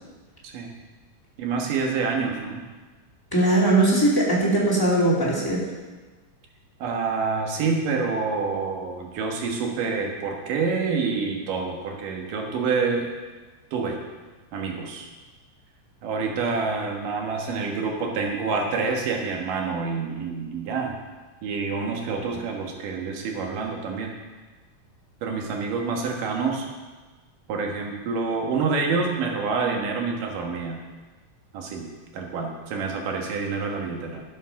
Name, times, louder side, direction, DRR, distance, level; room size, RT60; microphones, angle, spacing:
voice 1, 0.4-0.8 1.4-2.6 6.8-13.1 13.7-14.0 14.5-15.1 16.0-21.0 21.4-24.2 25.2-26.7 27.5-30.8 31.5-34.2, right 4 dB, 80° right, 1 dB, 3.0 m, -27 dB
voice 2, 3.3-5.6, right 1 dB, 5° left, -6 dB, 2.0 m, -20 dB
11.5 x 7.5 x 5.9 m, 1.3 s
omnidirectional pair, 3.7 m